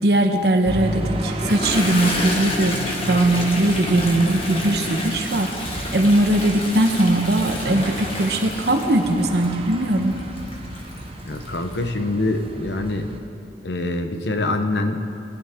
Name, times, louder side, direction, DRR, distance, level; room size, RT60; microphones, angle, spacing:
voice 1, 0.0-10.2, right 1 dB, 65° right, 5 dB, 1.1 m, -20 dB
sound 1, 0.6-13.2, right 1 dB, 30° right, 0.8 m, -33 dB
Toilet flush, 1.3-11.8, left 1 dB, 30° left, 1.5 m, -30 dB
voice 2, 11.3-13.1 13.6-15.0, left 2 dB, 75° left, 6 dB, 0.9 m, -24 dB
20.0 x 11.5 x 3.7 m, 2.7 s
head